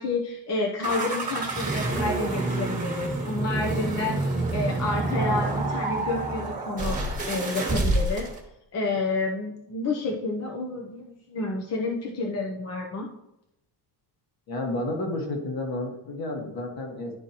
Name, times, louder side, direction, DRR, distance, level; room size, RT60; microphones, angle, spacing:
voice 1, 0.0-8.3 8.7-13.1, left 3 dB, 35° left, -1 dB, 0.7 m, -30 dB
sound 1, 0.8-8.4, right 2 dB, 15° right, 1.5 m, -28 dB
voice 2, 14.5-17.1, left 2 dB, 50° left, 1 dB, 1.7 m, -31 dB
11.5 x 4.5 x 2.9 m, 0.83 s
cardioid pair, 165°, 45 cm